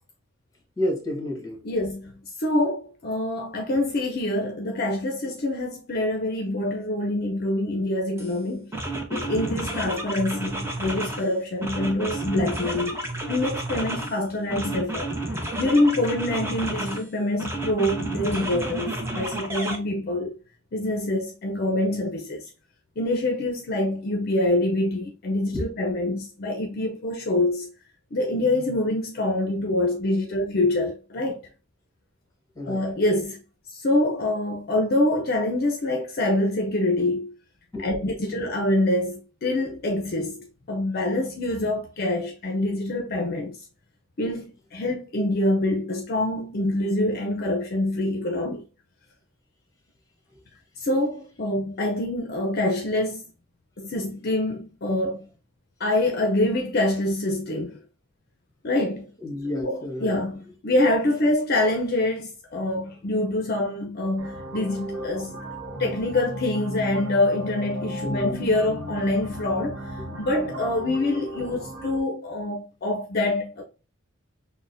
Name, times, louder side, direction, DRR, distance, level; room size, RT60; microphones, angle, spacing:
voice 1, 0.8-1.6 25.5-25.6 32.5-32.8 37.7-37.9 38.3-38.4 59.2-60.2 68.0-68.4, left 1 dB, 15° left, 1.5 m, -30 dB
voice 2, 1.6-8.7 9.1-15.1 15.6-20.3 20.7-22.5 23.0-27.7 28.1-31.4 32.7-33.4 33.7-37.3 37.8-43.6 44.2-48.6 50.8-53.2 53.8-55.2 55.8-57.8 58.6-59.1 59.6-65.4 65.8-69.8 70.2-73.6, left 1 dB, 50° left, 0.5 m, -25 dB
sound 1, 8.2-8.3 8.7-11.3 11.6-14.2 14.5-17.0 17.4-19.8, right 1 dB, 15° right, 0.8 m, -31 dB
sound 2, 64.2-72.0, right 1 dB, 70° right, 0.8 m, -35 dB
6.2 x 2.1 x 2.6 m
head